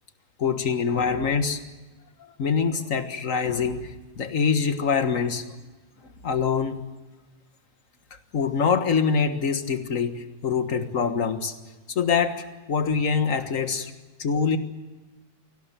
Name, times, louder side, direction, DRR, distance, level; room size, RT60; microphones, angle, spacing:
voice 1, 0.4-1.6 2.4-5.5 6.2-6.8 8.3-11.6 11.9-13.9 14.2-14.6, left 6 dB, 50° left, 8 dB, 1.9 m, -24 dB
24.0 x 17.0 x 9.2 m, 1.2 s
omnidirectional pair, 1.7 m